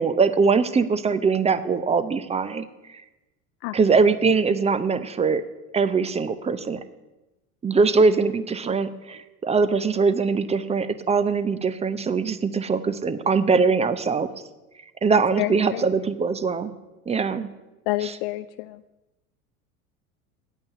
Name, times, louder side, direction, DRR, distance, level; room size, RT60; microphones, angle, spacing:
voice 1, 0.0-3.0 3.7-5.4 5.7-6.8 7.6-14.3 15.0-16.8 17.1-17.5 18.0-18.2, right 4 dB, 15° right, 13 dB, 0.7 m, -22 dB
voice 2, 15.1-15.8 17.9-18.8, left 17 dB, 45° left, 11 dB, 0.4 m, -29 dB
10.0 x 8.7 x 8.6 m, 1.1 s
figure-of-eight pair, 75°, 43 cm